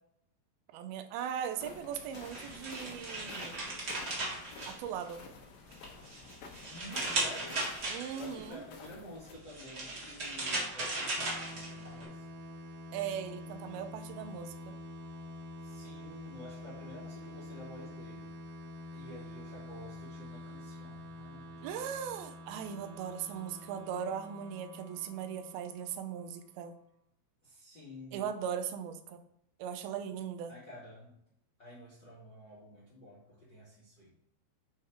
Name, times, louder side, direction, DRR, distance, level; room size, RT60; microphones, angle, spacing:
voice 1, 0.7-3.7 4.7-5.2 7.9-8.6 12.9-14.7 21.6-26.7 28.1-29.2 29.6-30.6, right 8 dB, 80° right, 8 dB, 2.2 m, -39 dB
sound 1, 1.6-9.3, left 5 dB, 85° left, 3.3 m, -51 dB
sound 2, 1.9-5.3 5.7-8.4 9.3-12.0, right 2 dB, 45° right, 1.4 m, -37 dB
voice 2, 6.7-7.7 8.1-12.3 15.6-18.3 18.9-22.0 27.4-28.3 30.5-31.2 31.6-34.2, left 1 dB, 65° left, -6 dB, 1.0 m, -50 dB
sound 3, 11.1-26.5, left 1 dB, 65° right, 3.1 m, -47 dB
9.3 x 3.8 x 4.5 m, 0.73 s
omnidirectional pair, 5.0 m